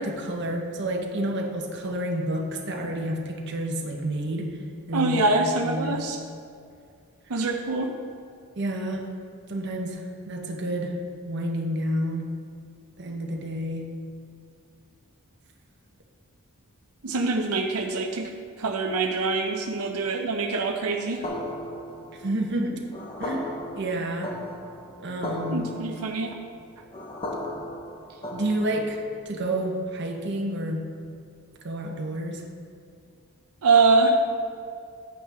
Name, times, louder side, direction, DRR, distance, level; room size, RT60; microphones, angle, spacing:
voice 1, 0.0-4.6 4.9-5.2 5.6-6.0 8.6-9.1 9.5-12.3 13.0-14.0 22.1-22.9 23.2-24.3 25.0-25.7 28.3-30.9 31.6-32.4, right 1 dB, 50° right, 1 dB, 1.1 m, -29 dB
voice 2, 4.9-6.2 7.3-7.9 17.0-18.3 18.6-21.2 25.5-26.3 33.6-34.1, right 3 dB, 90° right, 2 dB, 0.7 m, -24 dB
sound 1, 21.2-29.0, left 1 dB, 25° left, 1.0 m, -36 dB
10.5 x 8.7 x 3.5 m, 2.3 s
head